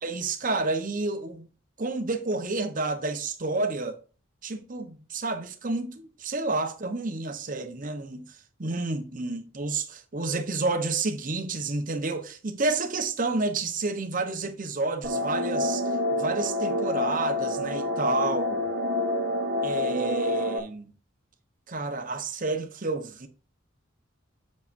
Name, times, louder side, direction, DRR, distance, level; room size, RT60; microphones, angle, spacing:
voice 1, 0.0-1.5 1.8-4.0 4.4-15.8 16.1-18.6 19.6-20.9 21.7-23.3, right 3 dB, 40° right, 1.0 m, -30 dB
sound 1, 15.0-20.6, left 2 dB, 60° right, 1.2 m, -27 dB
8.5 x 6.6 x 2.6 m
head